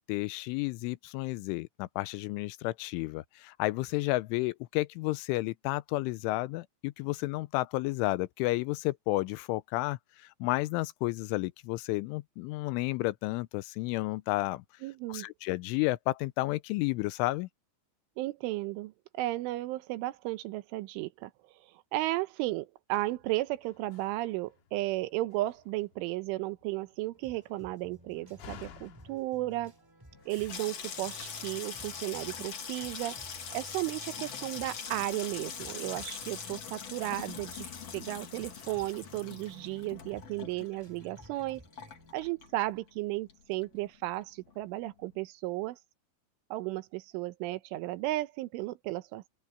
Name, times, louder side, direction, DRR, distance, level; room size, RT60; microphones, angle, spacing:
voice 1, 0.0-14.6 15.1-17.5, left 20 dB, 90° left, 3.2 m, -32 dB
voice 2, 14.8-15.3 18.2-21.3 21.9-29.7 30.3-33.2 33.5-41.6 42.1-45.8 46.5-49.2, right 17 dB, 85° right, 3.5 m, -34 dB
Slam, 23.0-30.6, left 8 dB, 70° left, 4.5 m, -56 dB
sound 1, 27.1-42.2, equal, 5° right, 2.3 m, -55 dB
Water tap faucet / Sink (filling or washing), 30.1-43.0 43.3-43.9 44.2-44.5, left 7 dB, 45° left, 2.5 m, -42 dB
open air
omnidirectional pair, 5.4 m